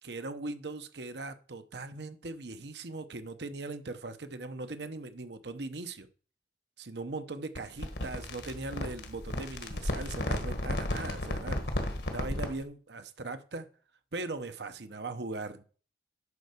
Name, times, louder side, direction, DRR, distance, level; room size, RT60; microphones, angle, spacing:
voice 1, 0.0-6.1 6.8-13.7 14.1-15.6, right 3 dB, 75° right, 1.0 m, -40 dB
sound 1, 7.5-12.6, left 1 dB, 70° left, 1.6 m, -34 dB
9.8 x 4.7 x 6.7 m
head